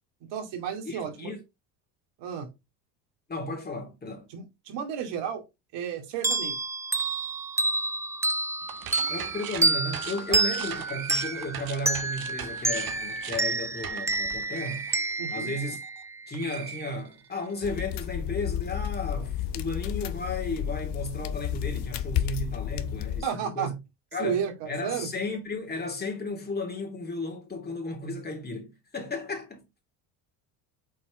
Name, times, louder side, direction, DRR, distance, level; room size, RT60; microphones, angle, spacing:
voice 1, 0.3-1.3 2.2-2.5 4.3-5.4 5.7-6.6 10.3-10.4 15.2-15.5 23.2-23.7 24.2-25.1, right 8 dB, 65° right, 2.4 m, -32 dB
voice 2, 0.8-1.4 3.3-4.3 9.1-14.9 15.3-15.8 16.3-23.7 24.1-29.6, left 2 dB, 20° left, 2.8 m, -34 dB
sound 1, 6.2-16.5, right 3 dB, 5° right, 0.4 m, -29 dB
sound 2, 8.6-16.0 16.3-17.5, right 10 dB, 50° right, 1.4 m, -40 dB
sound 3, 17.6-23.2, left 10 dB, 65° left, 0.9 m, -31 dB
6.1 x 4.2 x 3.7 m
supercardioid pair, 85°, 45 cm